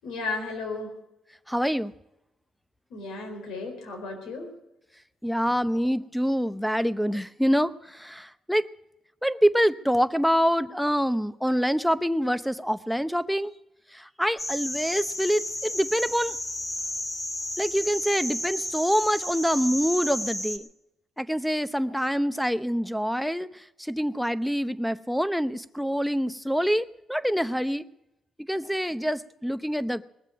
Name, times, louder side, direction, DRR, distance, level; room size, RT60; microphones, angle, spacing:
voice 1, 0.0-1.0 2.9-4.5, left 3 dB, 85° left, 3 dB, 4.4 m, -34 dB
voice 2, 1.5-1.9 5.2-8.6 9.2-13.5 13.9-16.4 17.6-20.7 21.2-27.8 28.5-30.1, equal, ahead, 14 dB, 0.7 m, -26 dB
sound 1, 14.4-20.6, left 1 dB, 20° left, 2.3 m, -32 dB
20.5 x 7.4 x 9.2 m, 0.88 s
cardioid pair, 90°, 0 cm